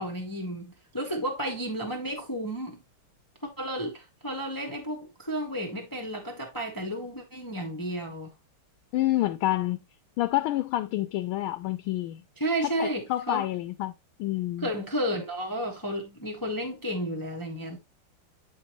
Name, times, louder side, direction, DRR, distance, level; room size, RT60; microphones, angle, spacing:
voice 1, 0.0-2.8 3.4-8.3 12.4-13.5 14.6-17.8, right 1 dB, 15° left, 0.8 m, -32 dB
voice 2, 8.9-9.8 10.2-12.2 12.6-13.9 14.2-14.7, left 15 dB, 80° left, 1.4 m, -28 dB
9.1 x 4.5 x 3.0 m
omnidirectional pair, 2.3 m